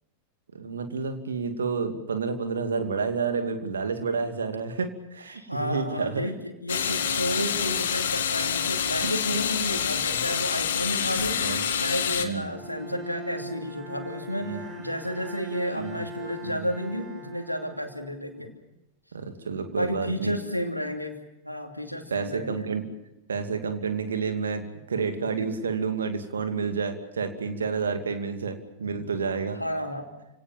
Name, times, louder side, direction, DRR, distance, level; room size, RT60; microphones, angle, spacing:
voice 1, 0.5-6.3 9.0-9.1 10.0-10.2 11.4-11.7 12.2-12.5 14.3-14.6 15.7-16.0 16.4-16.7 19.1-20.4 22.1-22.8 23.3-29.6, right 5 dB, 70° right, 7 dB, 2.6 m, -30 dB
voice 2, 5.3-11.4 11.8-18.5 19.7-21.2 21.4-22.7 29.6-30.0, equal, 90° left, 4 dB, 2.8 m, -32 dB
sound 1, 6.7-12.3, left 8 dB, 60° left, 1.8 m, -27 dB
Bowed string instrument, 12.5-18.5, equal, 25° right, 4.8 m, -40 dB
29.0 x 18.0 x 7.4 m, 0.91 s
figure-of-eight pair, 90°, 0 cm